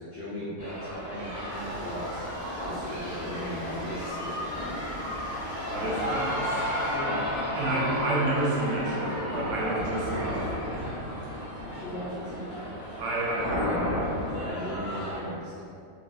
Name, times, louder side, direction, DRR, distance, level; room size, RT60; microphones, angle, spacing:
voice 1, 0.0-2.2 2.6-4.7 6.8-7.1 7.5-7.6 11.6-13.0 14.3-15.5, equal, 80° left, -8 dB, 0.4 m, -38 dB
sound 1, 0.6-15.2, equal, 5° right, 0.9 m, -33 dB
sound 2, 1.5-6.9, right 1 dB, 90° right, 1.2 m, -44 dB
voice 2, 5.5-6.7 7.6-11.4 13.0-14.3, right 1 dB, 70° right, -5 dB, 0.9 m, -31 dB
Keyboard (musical), 7.7-10.5, equal, 55° left, 0.9 m, -41 dB
3.2 x 2.3 x 2.3 m, 2.5 s
omnidirectional pair, 1.5 m